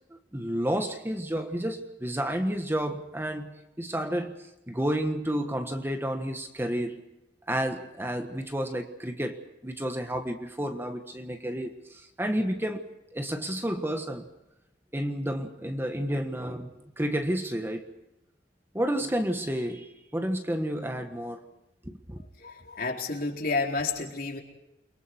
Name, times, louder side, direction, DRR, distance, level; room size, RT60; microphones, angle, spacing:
voice 1, 0.3-4.4 4.7-7.0 7.5-9.4 9.6-14.3 14.9-17.9 18.7-21.5 21.8-22.2, equal, 15° right, 6 dB, 1.5 m, -31 dB
voice 2, 22.4-24.4, left 3 dB, 55° left, 1 dB, 4.1 m, -30 dB
29.5 x 23.5 x 4.6 m, 0.94 s
head